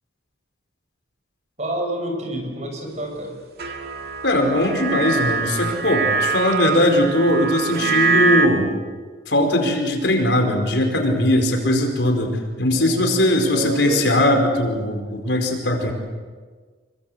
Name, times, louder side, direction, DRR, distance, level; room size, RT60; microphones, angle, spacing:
voice 1, 1.6-3.4 12.7-13.1 13.5-14.0, right 1 dB, 40° right, 3 dB, 6.3 m, -28 dB
sound 1, 3.6-8.5, right 4 dB, 55° right, 2.5 m, -23 dB
voice 2, 4.2-8.7 9.3-15.9, left 1 dB, 70° left, 3 dB, 5.0 m, -20 dB
27.0 x 24.0 x 8.1 m, 1.5 s
head